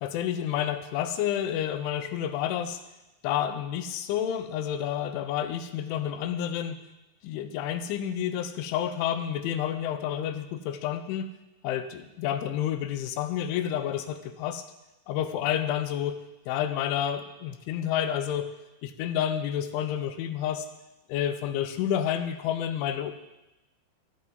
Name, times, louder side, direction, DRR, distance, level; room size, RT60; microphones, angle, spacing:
voice 1, 0.0-2.8 3.2-6.8 7.2-11.3 11.6-14.6 15.1-16.2 16.5-18.5 18.8-20.7 21.1-23.1, left 10 dB, 80° left, 9 dB, 3.2 m, -29 dB
14.0 x 13.0 x 3.9 m, 0.97 s
omnidirectional pair, 5.6 m